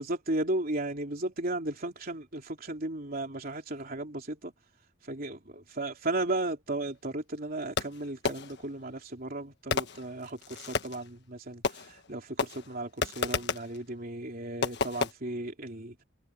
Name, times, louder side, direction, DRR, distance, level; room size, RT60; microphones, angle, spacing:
voice 1, 0.0-4.5 5.0-16.0, right 2 dB, 50° right, 3.4 m, -35 dB
Fireworks, 7.8-8.7 9.7-11.1 11.6-12.1 12.4-13.8 14.6-15.1, left 4 dB, 60° left, 1.4 m, -32 dB
head